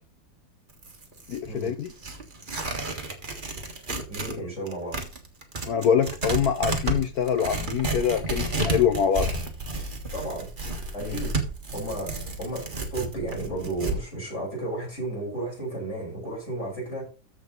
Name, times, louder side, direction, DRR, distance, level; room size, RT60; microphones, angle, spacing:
Tearing, 0.7-4.4 4.7-14.0, right 2 dB, 25° right, 1.5 m, -32 dB
voice 1, 1.3-1.9 3.9-4.0 4.3-4.5 5.7-9.3 11.0-11.2, left 8 dB, 65° left, 0.9 m, -25 dB
voice 2, 4.1-5.0 10.1-10.5 10.9-11.3 11.7-17.1, right 2 dB, 30° left, 6.2 m, -33 dB
14.0 x 5.1 x 3.9 m
omnidirectional pair, 2.3 m